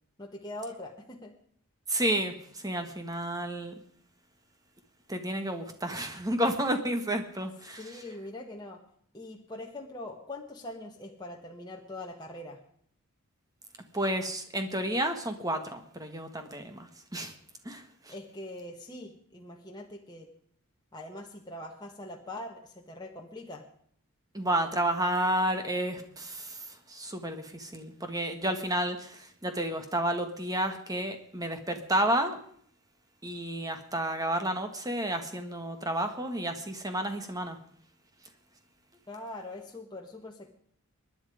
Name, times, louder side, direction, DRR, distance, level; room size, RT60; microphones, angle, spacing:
voice 1, 0.2-1.3 7.8-8.8 9.1-12.6 18.1-20.3 20.9-23.6 39.1-40.5, left 1 dB, 20° left, 0 dB, 1.4 m, -42 dB
voice 2, 1.9-3.7 5.1-8.0 13.9-17.3 17.7-18.1 24.3-32.4 33.2-37.6, right 1 dB, 15° right, 7 dB, 1.6 m, -31 dB
24.0 x 10.5 x 5.0 m, 0.63 s
head